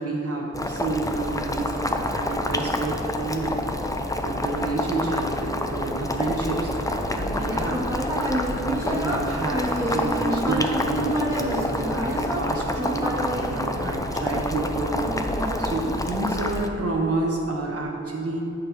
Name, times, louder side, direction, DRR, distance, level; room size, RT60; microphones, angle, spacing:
voice 1, 0.0-3.6 4.2-7.9 8.4-18.4, right 2 dB, 50° right, -2 dB, 1.1 m, -29 dB
Boiling, 0.5-16.7, left 1 dB, 10° left, 0.5 m, -28 dB
Human voice, 7.1-14.4 15.0-16.5, right 1 dB, 10° right, 1.2 m, -30 dB
8.6 x 6.5 x 4.7 m, 2.9 s
wide cardioid pair, 90°, 30 cm